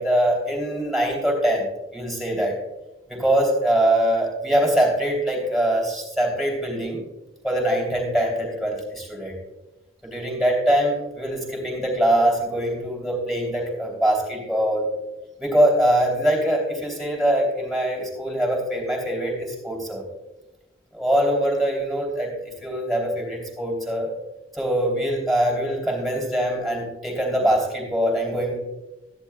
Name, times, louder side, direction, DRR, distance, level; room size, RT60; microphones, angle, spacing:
voice 1, 0.0-2.6 3.1-7.0 7.4-9.3 10.1-14.9 15.4-20.0 20.9-24.1 24.5-28.6, right 1 dB, ahead, -2 dB, 3.0 m, -23 dB
13.5 x 10.5 x 2.2 m, 1.0 s
head